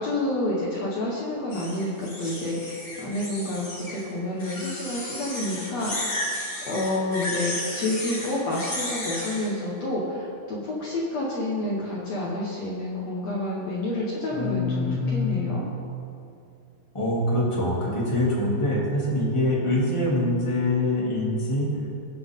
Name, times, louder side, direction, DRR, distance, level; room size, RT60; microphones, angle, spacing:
voice 1, 0.0-6.2 6.7-15.6, left 1 dB, 75° left, -5 dB, 1.5 m, -29 dB
sound 1, 1.5-4.0 4.4-9.5, left 1 dB, 25° left, 2.1 m, -33 dB
voice 2, 14.3-15.5 16.9-21.7, left 1 dB, 10° left, -6 dB, 1.5 m, -24 dB
20.5 x 7.8 x 3.8 m, 2.5 s
omnidirectional pair, 5.2 m